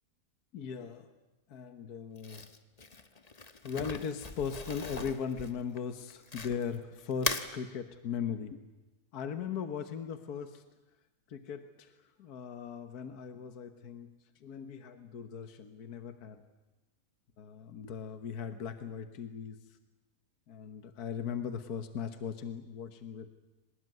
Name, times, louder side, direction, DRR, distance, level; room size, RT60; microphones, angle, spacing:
voice 1, 0.5-1.1 1.5-2.4 3.6-8.6 9.1-10.6 11.3-11.9 12.2-14.1 14.4-16.4 17.4-19.6 20.5-23.3, left 7 dB, 70° left, 8 dB, 1.7 m, -38 dB
Crumpling crinkling, 2.2-6.8 7.1-7.5, left 3 dB, 25° left, 1.1 m, -39 dB
24.0 x 20.0 x 9.4 m, 1.1 s
omnidirectional pair, 1.7 m